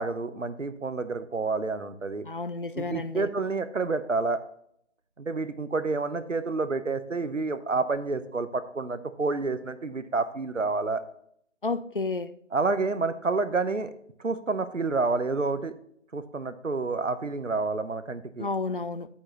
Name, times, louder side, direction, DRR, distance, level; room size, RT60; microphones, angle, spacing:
voice 1, 0.0-2.2 2.7-4.4 5.2-11.0 12.5-13.9 14.2-15.7 16.1-18.5, right 3 dB, 90° right, 12 dB, 0.9 m, -29 dB
voice 2, 2.2-3.3 11.6-12.3 18.4-19.1, left 3 dB, 45° left, 14 dB, 0.5 m, -31 dB
9.0 x 8.5 x 2.9 m, 0.68 s
figure-of-eight pair, 165°, 37 cm